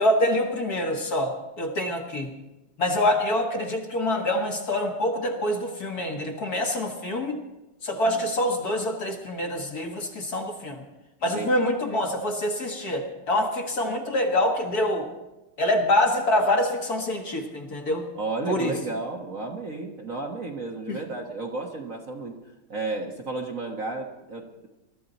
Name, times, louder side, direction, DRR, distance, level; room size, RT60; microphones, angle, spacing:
voice 1, 0.0-2.3 2.8-7.4 7.8-10.8 11.2-15.1 15.6-18.1 18.5-18.8 20.9-21.0, left 1 dB, 45° left, 2 dB, 1.9 m, -25 dB
voice 2, 18.1-22.4 22.7-24.7, right 3 dB, 45° right, 1 dB, 1.4 m, -33 dB
22.0 x 13.0 x 4.1 m, 1.0 s
omnidirectional pair, 2.4 m